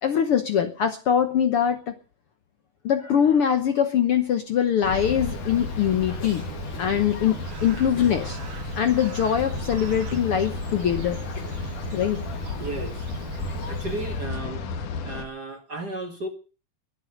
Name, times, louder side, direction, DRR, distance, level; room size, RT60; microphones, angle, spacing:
voice 1, 0.0-1.9 2.8-6.4 6.8-8.4 8.8-11.2 11.9-12.4, left 8 dB, 60° left, 1.6 m, -23 dB
Bird, 4.5-14.5, right 7 dB, 55° right, 1.5 m, -39 dB
sound 1, 4.8-15.2, left 4 dB, 80° left, 3.4 m, -33 dB
Cough, 6.2-7.0 7.9-8.3 8.7-8.8 9.4-10.0 10.6-10.7 11.4-11.7, left 4 dB, 35° left, 3.8 m, -45 dB
voice 2, 12.6-13.0 13.7-14.6 15.0-16.3, right 2 dB, 40° right, 1.6 m, -34 dB
22.0 x 8.3 x 6.6 m
omnidirectional pair, 3.6 m